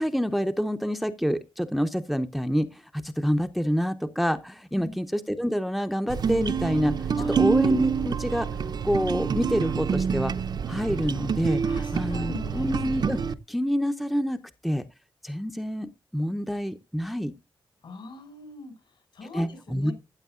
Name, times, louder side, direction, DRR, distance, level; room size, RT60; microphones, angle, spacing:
voice 1, 0.0-7.1 7.4-8.5 8.8-10.3 10.7-11.6 11.9-13.2 13.5-14.8 15.2-17.3 19.3-19.9, equal, ahead, 0.6 m, -27 dB
sound 1, 6.1-13.3, right 6 dB, 55° right, 0.7 m, -27 dB
voice 2, 7.1-7.5 11.7-12.8 17.8-19.9, left 3 dB, 70° left, 5.3 m, -41 dB
15.0 x 7.9 x 2.4 m
wide cardioid pair, 120°, 9 cm